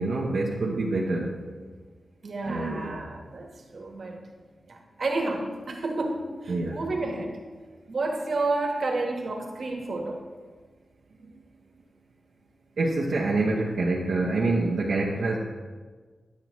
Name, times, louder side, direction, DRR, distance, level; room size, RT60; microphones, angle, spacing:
voice 1, 0.0-1.3 2.4-3.0 6.5-6.8 12.8-15.4, right 2 dB, 75° right, -3 dB, 0.9 m, -26 dB
voice 2, 2.2-4.2 4.7-7.3 7.9-10.2, right 2 dB, 55° right, 1 dB, 1.4 m, -30 dB
9.5 x 9.4 x 3.1 m, 1.4 s
wide cardioid pair, 145°, 0 cm